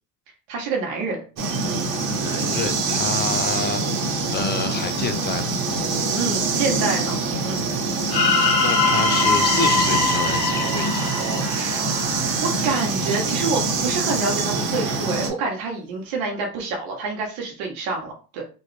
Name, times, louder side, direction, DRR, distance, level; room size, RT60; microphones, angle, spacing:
voice 1, 0.5-1.2 1.6-1.8 6.1-7.2 7.4-7.6 11.5-11.8 12.4-18.4, right 4 dB, 65° right, 0 dB, 1.1 m, -27 dB
sound 1, 1.4-15.3, right 4 dB, 50° right, 1.2 m, -24 dB
voice 2, 2.1-4.1 4.3-5.6 8.6-11.1, left 6 dB, 25° left, 9 dB, 0.4 m, -28 dB
sound 2, 8.1-12.2, left 4 dB, 50° left, 1.3 m, -22 dB
sound 3, 8.9-13.4, right 7 dB, 80° right, 0.8 m, -36 dB
3.1 x 2.4 x 3.2 m, 0.36 s
hypercardioid pair, 70°, 49 cm